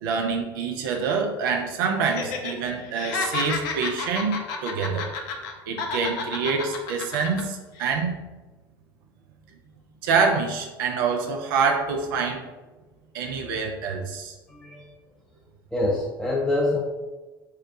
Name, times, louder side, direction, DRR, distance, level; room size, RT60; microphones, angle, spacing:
voice 1, 0.0-5.1 5.7-8.2 10.0-12.4 13.1-14.3, right 5 dB, 65° right, 3 dB, 0.5 m, -26 dB
Laughter, 2.0-2.5 2.8-5.5 5.8-7.4 7.8-7.9, left 4 dB, 65° left, 0.6 m, -31 dB
voice 2, 14.5-14.9 15.7-16.8, left 2 dB, 5° left, -4 dB, 0.7 m, -25 dB
4.3 x 2.2 x 3.6 m, 1.2 s
figure-of-eight pair, 65°, 12 cm